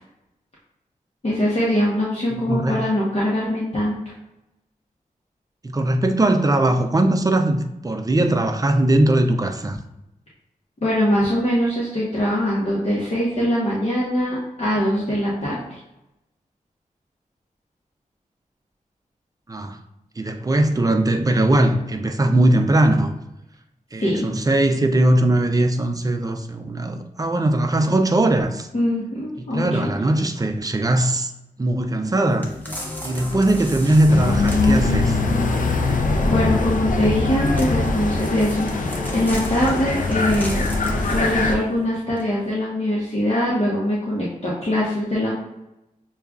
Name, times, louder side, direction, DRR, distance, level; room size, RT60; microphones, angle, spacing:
voice 1, 1.2-4.0 10.8-15.8 24.0-24.3 28.7-29.9 36.3-40.7 41.1-45.3, left 1 dB, 45° left, -7 dB, 1.0 m, -22 dB
voice 2, 2.3-2.8 5.6-9.8 19.5-19.8 20.2-23.1 23.9-28.7 29.4-31.3 31.6-32.5 33.0-35.2, right 1 dB, 25° right, 6 dB, 0.4 m, -20 dB
sound 1, 32.4-35.4 37.4-41.6 42.2-42.3, left 1 dB, 10° left, 0.9 m, -34 dB
sound 2, 34.1-41.5, left 3 dB, 65° left, 0.5 m, -22 dB
6.5 x 2.3 x 2.4 m, 0.91 s
wide cardioid pair, 90°, 14 cm